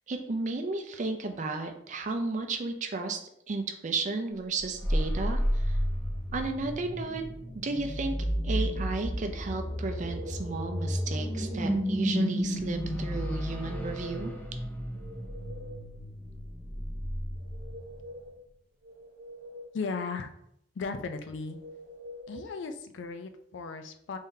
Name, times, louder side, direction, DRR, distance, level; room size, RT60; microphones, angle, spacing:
voice 1, 0.1-3.2 3.5-5.8 6.3-7.2 7.6-8.1 8.4-14.3, right 3 dB, 40° right, 6 dB, 0.4 m, -33 dB
sound 1, 4.6-18.1, equal, 10° left, 0.5 m, -32 dB
sound 2, 9.7-10.5 11.0-11.9 13.5-14.5 14.8-15.9 17.3-18.4 18.8-19.8 21.4-22.4, equal, 85° right, 0.6 m, -47 dB
voice 2, 19.7-20.3 20.7-21.6 22.3-24.2, left 4 dB, 75° left, 8 dB, 0.4 m, -36 dB
3.7 x 3.5 x 2.7 m, 0.74 s
head